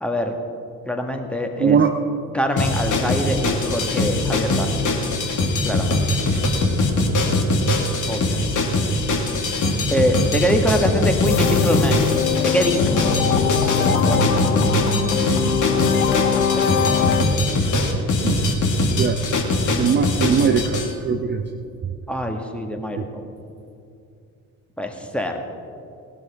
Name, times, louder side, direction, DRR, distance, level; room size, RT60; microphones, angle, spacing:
voice 1, 0.0-0.3 0.9-1.8 2.3-4.9 5.6-6.2 8.1-8.4 9.9-12.1 12.4-13.2 13.9-14.3 16.5-16.8 22.1-23.2 24.8-25.3, equal, 5° left, 3 dB, 1.7 m, -24 dB
voice 2, 1.6-1.9 6.3-6.4 18.2-18.4 18.9-19.2 19.8-21.4, right 6 dB, 25° right, 6 dB, 0.7 m, -20 dB
sound 1, 2.6-20.9, left 2 dB, 45° left, 1.9 m, -21 dB
sound 2, 11.2-17.2, left 7 dB, 75° left, 0.8 m, -22 dB
18.5 x 12.5 x 3.6 m, 2.5 s
figure-of-eight pair, 50°, 43 cm